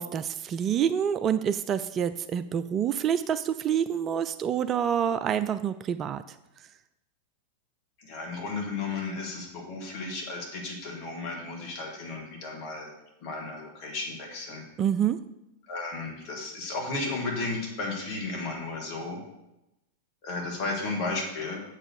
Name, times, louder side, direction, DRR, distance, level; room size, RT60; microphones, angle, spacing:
voice 1, 0.0-6.2 14.8-15.2, right 8 dB, 30° right, 13 dB, 0.3 m, -27 dB
voice 2, 8.0-12.9 13.2-14.6 15.7-19.2 20.2-21.6, left 3 dB, 45° left, 0 dB, 2.4 m, -34 dB
7.5 x 4.9 x 6.5 m, 0.90 s
figure-of-eight pair, 90°, 0 cm